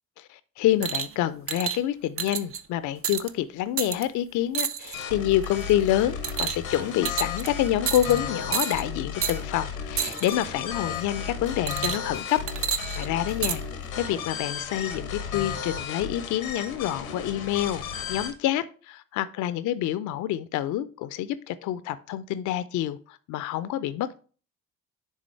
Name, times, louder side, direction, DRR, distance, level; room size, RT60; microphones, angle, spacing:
voice 1, 0.2-13.6 14.0-17.8 18.1-24.2, left 12 dB, 50° left, 0.5 m, -27 dB
sound 1, 0.8-1.1 1.5-1.8 2.2-2.6 3.0-3.3 3.8-4.0 4.5-5.0 5.4-5.7 6.2-6.8 7.1-7.5 7.9-8.2 8.5-8.8 9.2-9.4 10.0-10.4 11.7-12.2 12.5-13.6 14.4-14.5, right 8 dB, 35° right, 0.5 m, -29 dB
sound 2, 4.9-18.3, left 7 dB, 80° left, 0.9 m, -34 dB
sound 3, 9.1-15.8, equal, 80° right, 3.6 m, -49 dB
9.7 x 3.7 x 3.2 m
figure-of-eight pair, 40°, 40 cm